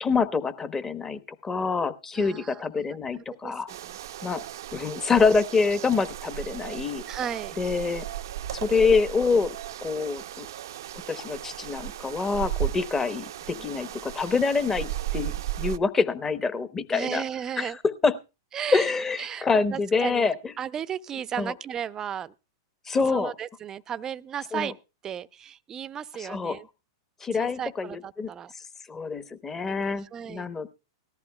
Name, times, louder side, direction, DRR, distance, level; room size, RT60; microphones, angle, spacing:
voice 1, 0.0-3.7 4.2-4.4 4.7-7.0 7.6-8.0 8.5-9.6 9.8-10.5 11.1-17.2 17.6-18.1 18.7-20.4 21.4-21.5 22.9-23.3 24.5-24.7 26.2-26.6 27.2-28.3 28.9-30.7, left 4 dB, 20° left, 12 dB, 1.0 m, -26 dB
voice 2, 2.1-2.7 3.1-4.0 7.1-7.5 13.5-13.7 16.9-17.8 18.5-18.9 19.2-20.3 20.6-22.3 23.1-24.8 25.0-26.7 27.3-28.5 29.7-30.5, right 9 dB, 25° right, 16 dB, 0.6 m, -35 dB
sound 1, 3.7-15.8, right 13 dB, 70° right, 0.6 m, -35 dB
sound 2, 7.2-7.5 9.2-9.4 11.2-11.5, left 8 dB, 50° left, 4.4 m, -48 dB
18.5 x 14.0 x 2.2 m, 0.29 s
hypercardioid pair, 110°, 2 cm